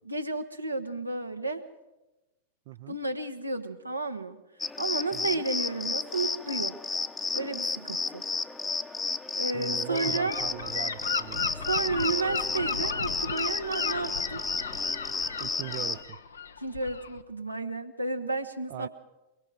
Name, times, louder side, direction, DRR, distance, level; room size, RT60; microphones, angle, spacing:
voice 1, 0.1-1.6 2.9-4.4 4.8-6.8 7.3-8.2 9.4-10.3 11.7-14.4 16.6-18.9, right 3 dB, 85° right, 6 dB, 1.3 m, -32 dB
voice 2, 2.7-3.0 5.1-5.4 9.5-11.5 15.4-16.2 18.7-18.9, right 15 dB, 50° right, 11 dB, 0.6 m, -39 dB
sound 1, 4.6-16.0, left 4 dB, 15° left, 1.0 m, -32 dB
Gull seagull / Wind, 9.9-17.2, left 5 dB, 75° left, 1.0 m, -35 dB
23.5 x 23.0 x 4.9 m, 1.0 s
figure-of-eight pair, 90°, 0 cm